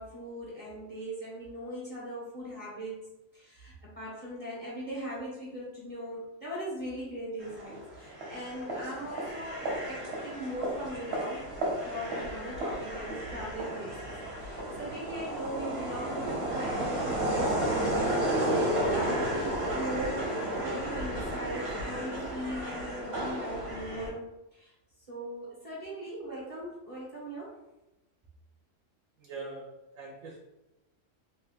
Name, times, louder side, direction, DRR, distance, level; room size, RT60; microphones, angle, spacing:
voice 1, 0.0-3.0 3.3-11.5 11.8-17.5 18.5-24.7 25.1-27.6, equal, 35° right, -6 dB, 0.8 m, -39 dB
sound 1, 7.4-24.1, right 1 dB, 55° right, 1.1 m, -32 dB
voice 2, 29.2-30.4, right 3 dB, 85° right, -2 dB, 1.0 m, -43 dB
3.0 x 2.2 x 3.4 m, 0.95 s
omnidirectional pair, 1.4 m